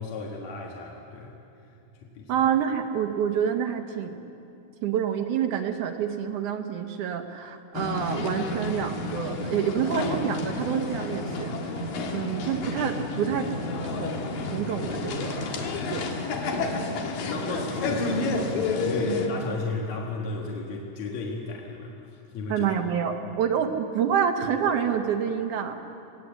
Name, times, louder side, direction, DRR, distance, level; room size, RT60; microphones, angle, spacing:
voice 1, 0.0-1.4 1.6-2.3 15.6-16.0 17.2-22.7, left 3 dB, 60° left, -1 dB, 2.6 m, -34 dB
voice 2, 2.3-4.2 4.8-13.5 13.8-16.1 16.6-16.8 17.5-17.6 22.5-25.7, right 8 dB, 70° right, 5 dB, 2.3 m, -28 dB
sound 1, 7.7-19.3, left 3 dB, 80° left, 3.4 m, -30 dB
20.0 x 19.5 x 8.1 m, 2.8 s
omnidirectional pair, 3.9 m